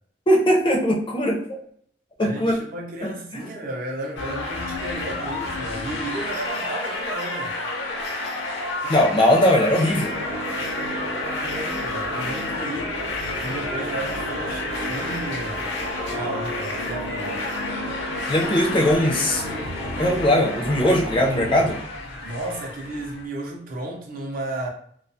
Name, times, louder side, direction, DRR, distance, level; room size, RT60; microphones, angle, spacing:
voice 1, 0.3-1.6 2.2-2.6 3.0-3.4 8.9-10.1 18.3-19.4 20.0-21.8, left 1 dB, 30° left, 0.5 m, -20 dB
voice 2, 2.2-7.6 11.1-12.9 13.4-15.7 16.1-17.5 22.2-24.7, right 1 dB, 50° right, 0.5 m, -33 dB
sound 1, 4.2-23.3, left 2 dB, 70° left, 0.6 m, -30 dB
sound 2, 9.9-21.8, right 1 dB, 80° right, 0.8 m, -35 dB
2.3 x 2.2 x 2.6 m
head